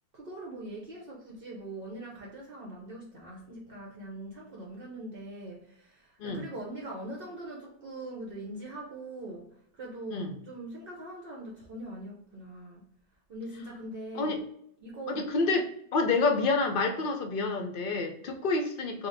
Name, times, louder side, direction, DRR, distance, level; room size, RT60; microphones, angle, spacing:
voice 1, 0.1-12.9 13.3-14.4 14.8-15.3, right 1 dB, 55° right, -2 dB, 0.8 m, -42 dB
voice 2, 15.1-19.1, left 3 dB, 60° left, 5 dB, 0.6 m, -28 dB
3.9 x 2.2 x 3.2 m, 0.71 s
omnidirectional pair, 1.2 m